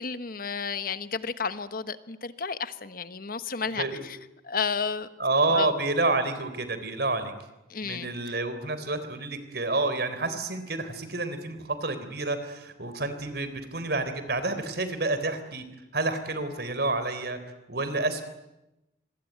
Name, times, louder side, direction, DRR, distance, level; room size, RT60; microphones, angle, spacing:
voice 1, 0.0-4.2 4.4-5.1 5.5-5.7 7.7-8.1, left 5 dB, 55° left, 12 dB, 1.3 m, -32 dB
voice 2, 5.2-7.3 7.8-15.6 15.9-17.4 17.7-18.3, right 2 dB, 60° right, 11 dB, 3.7 m, -29 dB
26.0 x 22.0 x 9.5 m, 0.93 s
head